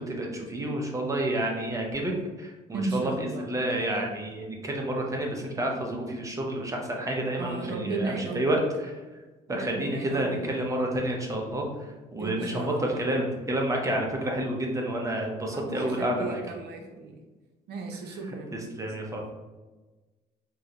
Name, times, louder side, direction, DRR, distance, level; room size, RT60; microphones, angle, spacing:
voice 1, 0.0-2.1 2.4-8.6 9.5-11.7 12.1-16.4 18.8-19.3, right 1 dB, 20° right, 0 dB, 0.6 m, -29 dB
voice 2, 2.7-3.5 7.4-8.6 9.5-10.4 12.2-13.0 15.5-17.2 17.7-18.8, right 3 dB, 75° right, 2 dB, 0.6 m, -35 dB
3.8 x 2.1 x 2.8 m, 1.2 s
cardioid pair, 110°, 17 cm